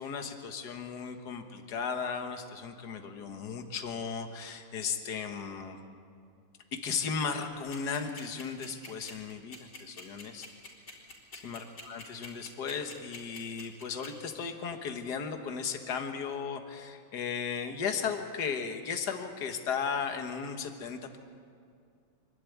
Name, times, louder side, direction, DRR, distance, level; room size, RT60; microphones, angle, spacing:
voice 1, 0.0-5.8 6.7-10.5 11.3-21.2, left 6 dB, 60° left, 6 dB, 1.9 m, -36 dB
sound 1, 7.7-14.1, left 3 dB, 85° left, 4.8 m, -45 dB
26.5 x 12.0 x 9.4 m, 2.2 s
omnidirectional pair, 2.1 m